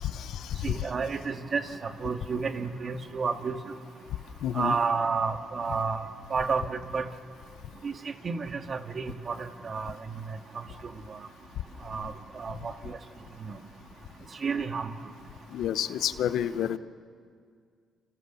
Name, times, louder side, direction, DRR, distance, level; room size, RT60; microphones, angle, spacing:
voice 1, 0.0-0.6 4.4-4.7 15.5-16.8, left 10 dB, 80° left, 13 dB, 0.9 m, -29 dB
voice 2, 0.6-3.6 4.5-6.0 6.3-7.1 7.8-7.9 8.2-10.2 11.8-13.0 13.5-13.6 14.4-14.9, right 5 dB, 45° right, 6 dB, 1.9 m, -31 dB
28.5 x 27.5 x 7.0 m, 2.1 s
cardioid pair, 90°, 0 cm